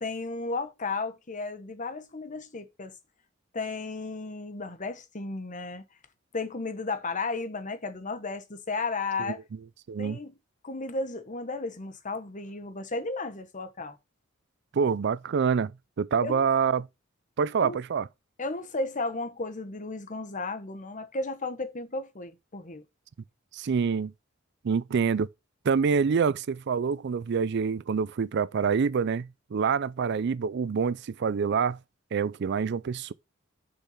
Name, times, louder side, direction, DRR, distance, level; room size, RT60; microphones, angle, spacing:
voice 1, 0.0-2.9 3.5-5.8 6.3-9.4 10.0-10.3 10.6-14.0 16.2-16.5 17.6-17.8 18.4-22.8, left 3 dB, 40° left, 1.2 m, -34 dB
voice 2, 9.9-10.2 14.7-15.7 16.0-16.9 17.4-18.1 23.5-24.1 24.6-25.3 25.6-31.8 32.1-33.1, right 6 dB, 60° right, 0.4 m, -26 dB
6.9 x 5.7 x 5.7 m
head